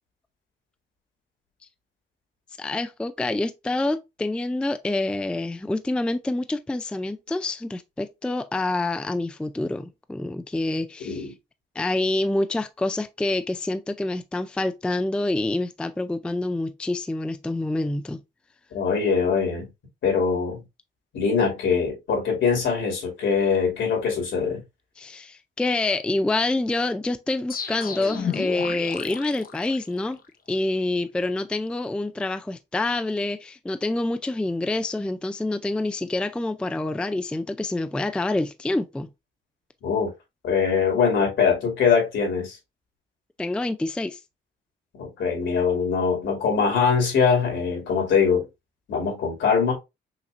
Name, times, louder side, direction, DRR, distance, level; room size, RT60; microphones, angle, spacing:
voice 1, 2.6-11.3 11.8-18.2 25.0-30.2 30.5-39.1 43.4-44.2, left 2 dB, 5° left, 0.3 m, -27 dB
voice 2, 18.7-19.7 20.0-20.6 21.1-24.6 39.8-40.1 40.4-42.6 45.0-48.4 48.9-49.7, left 6 dB, 70° left, 2.6 m, -22 dB
sound 1, 27.5-30.3, left 7 dB, 45° left, 0.9 m, -32 dB
5.7 x 2.9 x 2.5 m
cardioid pair, 90°, 20 cm